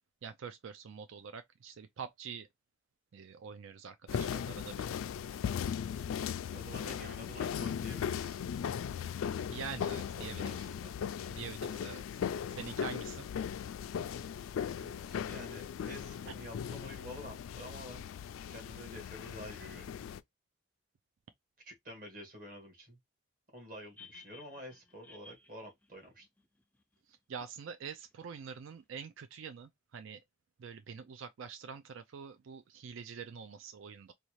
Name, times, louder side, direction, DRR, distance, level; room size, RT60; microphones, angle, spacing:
voice 1, 0.2-2.5 3.1-4.9 9.5-10.5 11.3-12.2 12.5-13.3 27.1-30.2 30.6-34.1, right 6 dB, 75° right, 0.4 m, -45 dB
sound 1, 4.1-20.2, left 8 dB, 85° left, 0.3 m, -38 dB
voice 2, 6.5-8.7 10.1-10.9 14.7-18.1 18.5-19.9 21.6-23.0 23.5-26.2, equal, 45° right, 1.7 m, -49 dB
sound 2, 24.0-27.0 27.9-28.0, left 4 dB, 5° left, 0.3 m, -56 dB
4.1 x 2.4 x 3.1 m
head